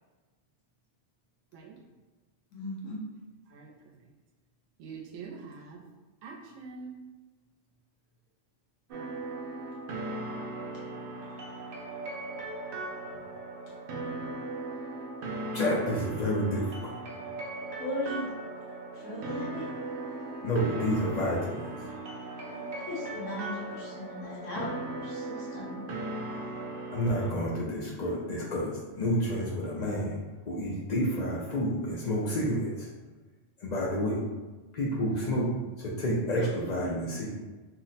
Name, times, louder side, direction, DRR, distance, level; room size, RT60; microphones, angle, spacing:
voice 1, 2.5-3.0 17.8-18.3 18.9-19.7 22.5-25.8, left 1 dB, 85° left, -7 dB, 1.1 m, -38 dB
voice 2, 3.5-4.1 4.8-5.8 6.2-7.0, right 5 dB, 85° right, 1 dB, 0.9 m, -45 dB
sound 1, 8.9-27.3, right 2 dB, 60° right, 0.6 m, -38 dB
voice 3, 15.5-17.0 20.4-21.9 26.9-30.2 30.5-32.9 33.6-34.2 34.7-35.5 35.8-37.3, equal, 60° left, -4 dB, 0.4 m, -29 dB
sound 2, 18.9-23.9, right 2 dB, 5° right, 0.4 m, -49 dB
2.8 x 2.1 x 3.9 m, 1.2 s
omnidirectional pair, 1.3 m